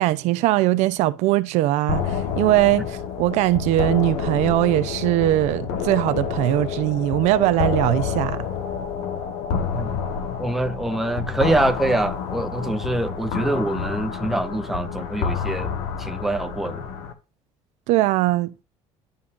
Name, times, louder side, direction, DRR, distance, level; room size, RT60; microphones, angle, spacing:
voice 1, 0.0-8.4 17.9-18.6, right 16 dB, 75° right, 0.6 m, -21 dB
sound 1, 1.9-17.1, left 6 dB, 85° left, 1.3 m, -28 dB
voice 2, 10.4-15.7 16.0-16.8, right 1 dB, ahead, 0.6 m, -25 dB
11.0 x 3.7 x 2.5 m
cardioid pair, 150°, 12 cm